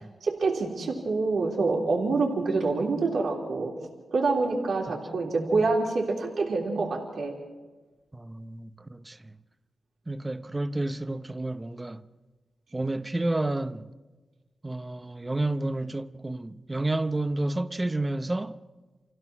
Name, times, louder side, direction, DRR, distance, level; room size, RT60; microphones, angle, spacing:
voice 1, 0.2-3.7 4.1-7.4, right 3 dB, 80° right, 3.5 m, -26 dB
voice 2, 8.1-9.3 10.1-12.0 12.7-13.9 14.6-18.6, right 2 dB, 25° right, 0.9 m, -30 dB
27.0 x 16.0 x 6.0 m
cardioid pair, 70°, 0 cm